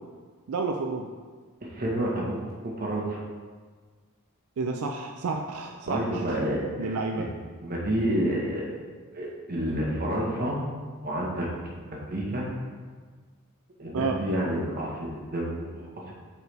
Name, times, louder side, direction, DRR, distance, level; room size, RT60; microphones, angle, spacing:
voice 1, 0.5-1.1 4.6-6.4 6.8-7.3 13.9-14.2, right 4 dB, 80° right, 3 dB, 0.4 m, -30 dB
voice 2, 1.7-2.4 2.6-3.2 5.8-7.2 7.6-8.8 9.1-10.6 11.0-12.5 13.8-16.1, right 1 dB, 45° right, -3 dB, 1.4 m, -29 dB
7.8 x 4.6 x 3.5 m, 1.5 s
head